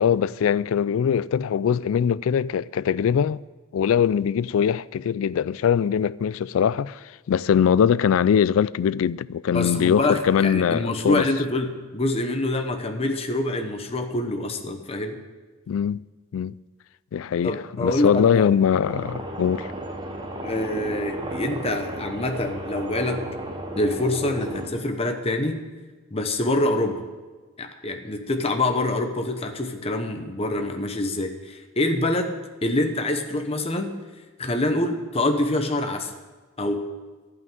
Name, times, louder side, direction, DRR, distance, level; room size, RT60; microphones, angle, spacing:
voice 1, 0.0-3.4 3.7-11.3 15.7-16.0 16.3-16.5 17.1-19.7, left 8 dB, 85° left, 0.3 m, -22 dB
voice 2, 9.5-15.2 17.4-18.5 20.4-23.3 23.8-25.6 26.1-27.0 27.6-33.9 34.4-36.1 36.6-36.9, left 2 dB, 30° left, 1.0 m, -26 dB
sound 1, 18.8-24.7, right 1 dB, 25° right, 1.1 m, -34 dB
12.0 x 5.8 x 9.3 m
head